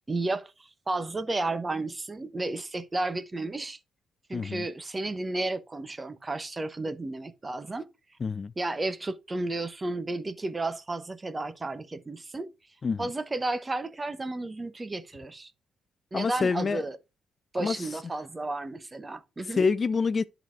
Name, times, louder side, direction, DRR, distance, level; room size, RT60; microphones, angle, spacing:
voice 1, 0.1-0.5 0.9-3.8 4.3-7.9 8.6-12.5 13.0-15.5 16.1-17.0 17.5-19.6, right 2 dB, 20° right, 1.0 m, -32 dB
voice 2, 4.3-4.6 8.2-8.5 12.8-13.1 16.1-16.8 17.6-17.9 19.6-20.2, left 5 dB, 35° left, 0.4 m, -27 dB
10.5 x 4.1 x 4.5 m
cardioid pair, 90°, 0 cm